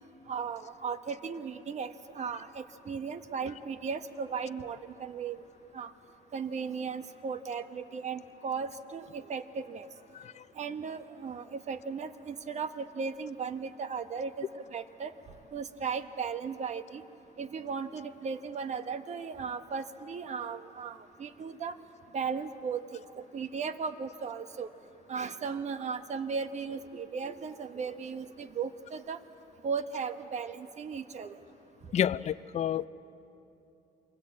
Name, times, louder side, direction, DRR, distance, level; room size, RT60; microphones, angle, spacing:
voice 1, 0.3-5.4 5.7-5.9 6.3-9.9 10.5-15.1 15.5-17.0 17.4-21.8 22.1-24.7 25.1-29.2 29.6-31.4, right 5 dB, 40° right, 10 dB, 1.4 m, -36 dB
voice 2, 31.9-32.9, left 10 dB, 45° left, 14 dB, 0.6 m, -30 dB
28.0 x 23.5 x 8.6 m, 2.9 s
cardioid pair, 110°, 17 cm